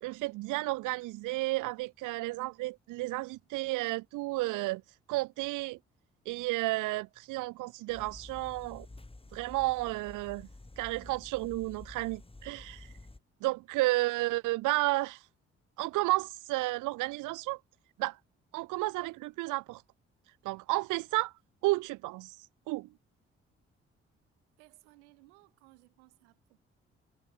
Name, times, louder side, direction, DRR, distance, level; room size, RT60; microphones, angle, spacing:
voice 1, 0.0-4.8 5.1-5.8 6.3-8.9 9.3-10.5 10.8-12.9 13.4-15.2 15.8-17.6 18.0-18.2 18.5-19.8 20.4-21.3 21.6-22.4 22.7-22.9, right 20 dB, 65° right, 0.6 m, -32 dB
sound 1, 7.9-13.2, left 2 dB, 15° left, 3.7 m, -50 dB
voice 2, 24.6-26.6, right 23 dB, 80° right, 5.9 m, -61 dB
hypercardioid pair, 40°, 33 cm